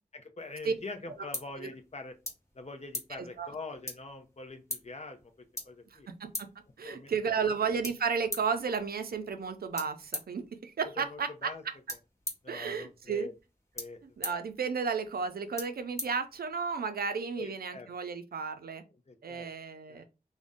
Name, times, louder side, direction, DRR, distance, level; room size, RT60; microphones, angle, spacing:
voice 1, 0.1-2.2 2.5-5.3 5.6-6.1 6.8-7.1 11.0-11.6 12.4-13.3 13.7-14.4 17.4-17.9 19.1-19.5 19.9-20.0, left 3 dB, 45° left, 6 dB, 0.6 m, -44 dB
sound 1, 0.6-16.8, left 1 dB, 20° left, 0.9 m, -45 dB
voice 2, 3.2-3.5 5.9-6.5 6.8-11.7 12.5-13.3 14.0-18.8 19.2-20.0, right 5 dB, 85° right, 9 dB, 0.4 m, -33 dB
2.5 x 2.1 x 3.5 m, 0.29 s
wide cardioid pair, 75°, 15 cm